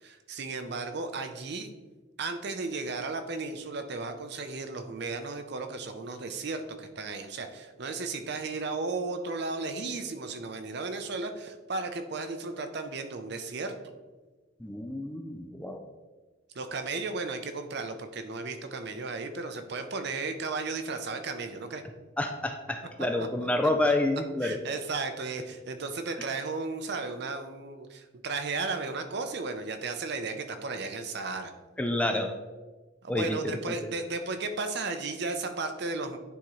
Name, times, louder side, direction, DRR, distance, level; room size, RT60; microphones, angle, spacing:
voice 1, 0.0-1.7 2.2-13.7 16.5-21.8 24.4-31.5 33.0-36.2, right 3 dB, 55° right, 7 dB, 0.6 m, -34 dB
voice 2, 14.6-15.8 22.2-24.6 31.8-32.3 33.1-33.4 33.7-33.8, left 1 dB, 5° left, 4 dB, 0.3 m, -28 dB
10.0 x 3.7 x 3.1 m, 1.3 s
head